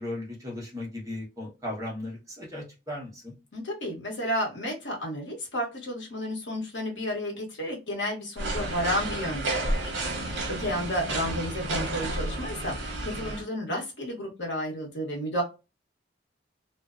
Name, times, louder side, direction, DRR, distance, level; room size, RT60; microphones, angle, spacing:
voice 1, 0.0-3.3 10.1-10.5, left 1 dB, 20° right, -4 dB, 0.9 m, -37 dB
voice 2, 3.5-15.4, equal, 75° left, 0 dB, 1.0 m, -32 dB
sound 1, 8.4-13.4, right 2 dB, 85° right, 0.7 m, -31 dB
2.5 x 2.1 x 2.4 m, 0.27 s
head